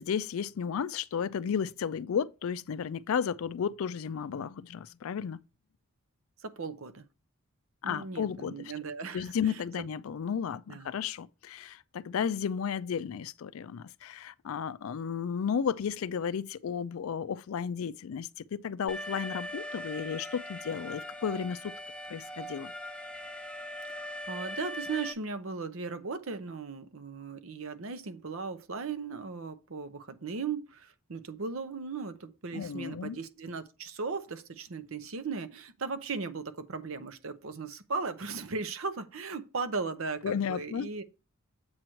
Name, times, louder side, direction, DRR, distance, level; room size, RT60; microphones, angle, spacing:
voice 1, 0.0-5.4 7.8-8.6 9.1-21.8 22.1-22.7 32.5-33.2 40.2-40.9, left 7 dB, 70° left, 0.4 m, -33 dB
voice 2, 6.4-7.1 7.8-9.7 10.7-10.9 24.0-41.0, right 4 dB, 70° right, 0.8 m, -37 dB
Alarm, 18.9-25.1, equal, 5° left, 0.9 m, -40 dB
7.8 x 3.1 x 6.2 m
head